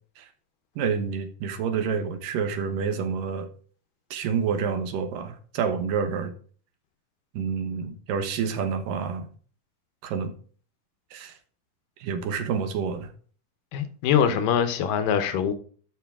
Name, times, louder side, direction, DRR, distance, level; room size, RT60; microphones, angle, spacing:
voice 1, 0.8-3.5 4.1-6.3 7.3-9.3 10.0-10.3 11.1-11.4 12.0-13.1 14.3-14.4, right 6 dB, 85° right, 2.8 m, -28 dB
voice 2, 13.7-15.5, left 8 dB, 90° left, 2.7 m, -23 dB
12.5 x 5.9 x 3.6 m
omnidirectional pair, 3.8 m